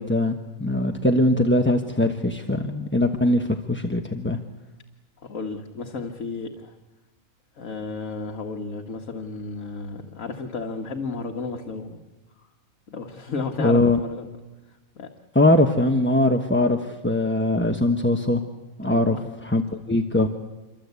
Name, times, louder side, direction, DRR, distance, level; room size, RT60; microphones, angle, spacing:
voice 1, 0.0-4.4 13.6-14.0 15.3-18.4 18.8-19.6 19.9-20.3, left 1 dB, 10° left, 4 dB, 1.0 m, -21 dB
voice 2, 5.2-6.8 7.6-12.0 12.9-14.3 15.0-15.1 18.8-19.4, left 4 dB, 65° left, 3 dB, 1.9 m, -33 dB
27.5 x 24.0 x 8.3 m, 1.1 s
omnidirectional pair, 1.5 m